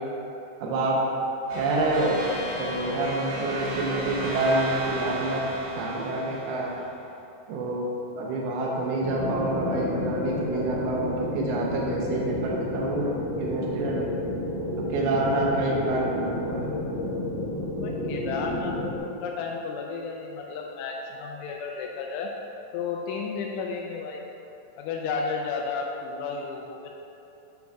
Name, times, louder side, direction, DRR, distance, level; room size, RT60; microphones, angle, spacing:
voice 1, 0.6-1.0 1.6-2.2 2.6-5.4 5.8-6.8 7.5-14.1 14.8-16.7, right 2 dB, 85° right, -3 dB, 2.2 m, -27 dB
sound 1, 1.5-7.0, right 1 dB, 65° right, 3.5 m, -34 dB
sound 2, 9.0-19.0, left 1 dB, 65° left, 2.4 m, -31 dB
voice 2, 17.7-22.3 22.7-24.2 24.8-26.9, left 4 dB, 85° left, -1 dB, 3.0 m, -33 dB
14.5 x 5.3 x 2.3 m, 2.8 s
omnidirectional pair, 5.5 m